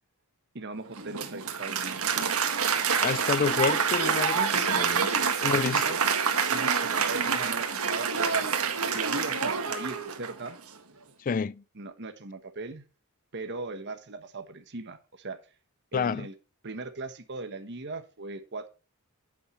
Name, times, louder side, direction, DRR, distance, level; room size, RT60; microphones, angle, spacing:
voice 1, 0.5-2.0 4.5-5.1 5.7-6.0 6.5-8.6 8.9-10.6 11.8-12.8 13.3-15.4 15.9-16.3 16.6-18.7, right 3 dB, 50° right, 1.2 m, -39 dB
Applause, 0.9-10.5, right 6 dB, 75° right, 1.7 m, -27 dB
voice 2, 3.0-5.1 5.4-6.0 11.2-11.6 15.9-16.3, left 6 dB, 40° left, 0.4 m, -29 dB
10.0 x 8.7 x 3.1 m
head